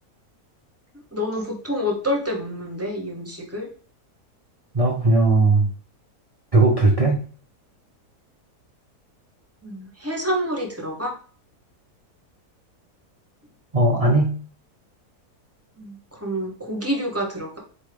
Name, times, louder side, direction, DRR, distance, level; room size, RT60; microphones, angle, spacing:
voice 1, 1.1-3.7 9.6-11.1 15.8-17.6, equal, 15° right, 0 dB, 0.7 m, -28 dB
voice 2, 4.7-5.7 6.5-7.1 13.7-14.4, right 2 dB, 50° right, -1 dB, 0.4 m, -17 dB
4.2 x 3.6 x 3.3 m, 0.42 s
omnidirectional pair, 1.7 m